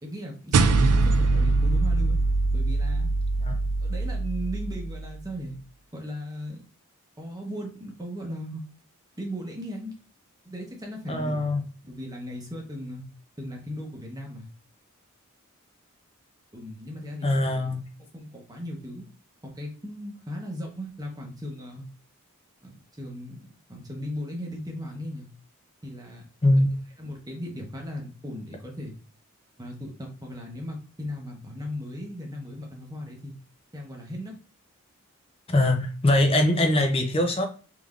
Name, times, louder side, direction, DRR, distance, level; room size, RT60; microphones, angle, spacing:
voice 1, 0.0-2.2 2.5-3.1 3.8-5.5 5.9-6.6 7.2-8.6 9.2-9.9 10.4-11.4 11.8-13.0 13.4-14.5 16.5-17.4 18.1-19.1 19.4-21.8 22.6-25.3 25.8-26.2 27.0-28.9 29.6-33.3 33.7-34.4, equal, 15° right, 0.9 m, -37 dB
sound 1, 0.5-5.2, right 3 dB, 85° right, 0.4 m, -23 dB
voice 2, 11.1-11.6 17.2-17.9 26.4-26.7 35.5-37.5, left 1 dB, 25° left, 0.6 m, -22 dB
3.5 x 3.4 x 2.4 m
head